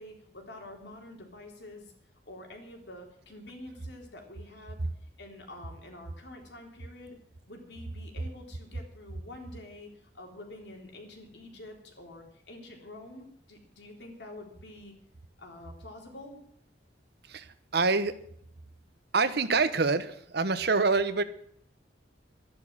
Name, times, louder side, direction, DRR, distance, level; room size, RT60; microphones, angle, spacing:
voice 1, 0.0-1.9 2.3-4.8 5.2-7.2 7.5-14.9 15.4-16.4, left 1 dB, 75° left, 2 dB, 3.6 m, -47 dB
voice 2, 17.3-18.2 19.1-21.2, right 4 dB, 65° right, 12 dB, 1.1 m, -26 dB
13.0 x 11.0 x 7.4 m, 0.65 s
head